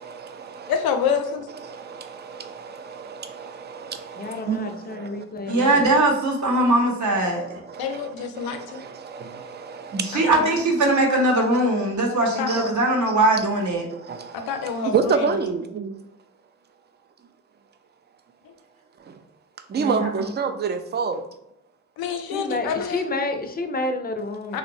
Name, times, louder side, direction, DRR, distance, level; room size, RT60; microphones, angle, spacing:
voice 1, 0.0-0.7 1.6-5.6 6.6-6.7 7.2-10.3 12.5-12.7 13.9-16.0 19.0-19.2 19.7-21.3, right 5 dB, 30° right, 0.4 m, -29 dB
voice 2, 0.7-1.5 7.8-8.8 10.1-10.5 12.4-12.7 14.3-15.3 22.0-23.0 24.5-24.6, left 6 dB, 85° left, 0.5 m, -27 dB
voice 3, 4.2-5.9 22.3-24.6, left 2 dB, 25° left, 0.5 m, -29 dB
voice 4, 5.5-7.5 9.9-13.9 19.7-20.3, right 2 dB, 55° right, 0.9 m, -21 dB
2.9 x 2.0 x 2.6 m
supercardioid pair, 50°, 36 cm